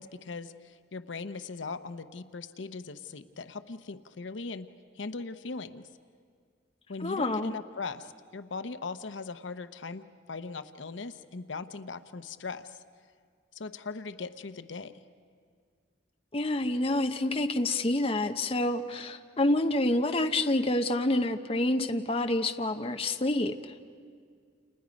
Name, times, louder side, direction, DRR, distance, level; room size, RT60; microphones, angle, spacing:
voice 1, 0.0-4.7 5.0-5.8 6.9-10.0 10.3-12.7 13.5-14.9, left 4 dB, 85° left, 11 dB, 0.8 m, -39 dB
voice 2, 7.0-7.5 16.3-23.7, left 1 dB, 30° left, 7 dB, 0.8 m, -28 dB
30.0 x 28.5 x 5.2 m, 2.1 s
head